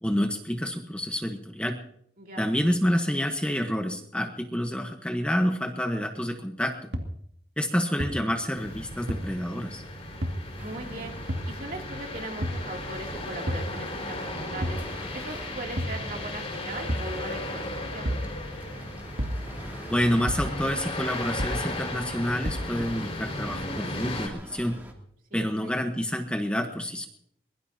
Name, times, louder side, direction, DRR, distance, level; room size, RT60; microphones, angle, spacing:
voice 1, 0.0-1.8 2.4-6.9 7.6-9.8 19.9-24.8 25.3-27.1, equal, 5° left, 4 dB, 1.1 m, -28 dB
voice 2, 2.2-2.5 10.6-11.2 11.4-14.8 15.1-18.0 25.3-25.7, right 2 dB, 50° right, 1 dB, 2.9 m, -39 dB
sound 1, 6.9-7.0 8.0-8.1 9.1-9.2 10.2-10.4 11.3-11.5 12.4-12.6 13.5-13.7 14.6-14.8 15.8-16.0 16.9-17.1 18.1-18.3 19.2-19.4 20.3-20.5 21.4-21.6 22.5-22.7, equal, 70° right, 2.4 m, -29 dB
sound 2, 8.5-24.3, left 1 dB, 35° left, 5.2 m, -36 dB
sound 3, 10.6-24.9, equal, 10° right, 2.6 m, -45 dB
23.0 x 21.5 x 2.9 m, 0.69 s
head